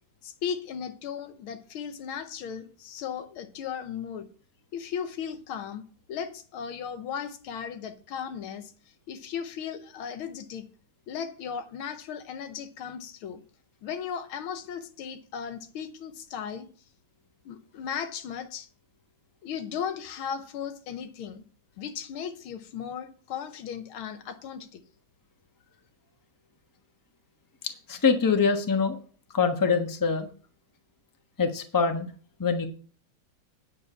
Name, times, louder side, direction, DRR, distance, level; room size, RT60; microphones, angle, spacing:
voice 1, 0.2-4.3 4.7-8.7 9.1-10.7 11.1-13.4 13.8-16.7 17.5-18.7 19.4-21.4 21.8-24.8, left 7 dB, 85° left, 1.8 m, -36 dB
voice 2, 27.6-29.0 29.3-30.3 31.4-32.1 32.4-32.7, left 5 dB, 15° left, 0.9 m, -24 dB
9.6 x 6.6 x 5.6 m
omnidirectional pair, 2.3 m